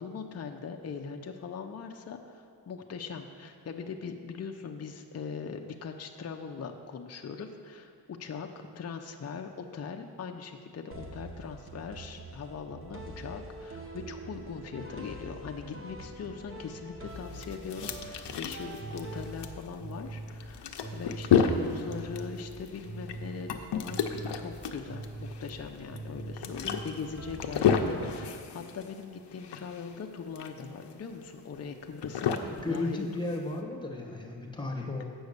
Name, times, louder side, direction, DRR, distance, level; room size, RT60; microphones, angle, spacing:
voice 1, 0.0-7.9 8.2-20.7 20.9-24.1 24.3-33.1, left 5 dB, 40° left, 4 dB, 0.6 m, -40 dB
sound 1, 10.9-28.7, right 2 dB, 30° right, 1.0 m, -44 dB
sound 2, 17.1-33.6, left 7 dB, 85° left, 0.7 m, -32 dB
voice 2, 32.5-35.0, left 2 dB, 10° left, 1 dB, 1.2 m, -34 dB
8.2 x 6.3 x 6.6 m, 2.2 s
wide cardioid pair, 125°, 41 cm